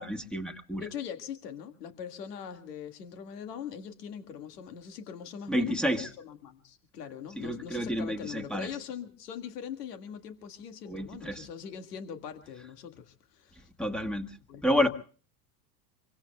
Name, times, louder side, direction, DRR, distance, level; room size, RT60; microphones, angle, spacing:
voice 1, 0.0-0.8 5.5-6.1 7.4-8.7 10.9-11.5 13.8-14.4 14.6-14.9, equal, ahead, 6 dB, 1.4 m, -30 dB
voice 2, 0.8-13.7 14.5-14.6, left 8 dB, 75° left, 7 dB, 1.9 m, -42 dB
26.0 x 24.0 x 2.2 m, 0.40 s
hypercardioid pair, 100°, 48 cm